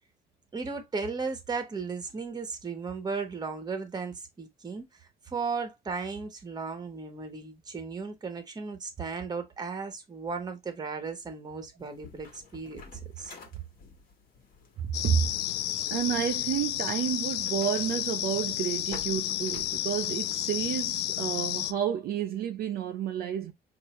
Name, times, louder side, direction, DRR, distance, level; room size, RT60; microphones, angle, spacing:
voice 1, 0.5-4.9 5.3-12.8 13.2-13.3, right 4 dB, 25° right, 1.1 m, -35 dB
sound 1, 11.8-21.0, left 4 dB, 60° left, 1.4 m, -52 dB
sound 2, 14.9-21.7, left 14 dB, 90° left, 0.4 m, -31 dB
voice 2, 15.0-15.3 15.9-23.5, right 9 dB, 65° right, 0.6 m, -30 dB
4.5 x 2.7 x 3.1 m
cardioid pair, 110°, 17 cm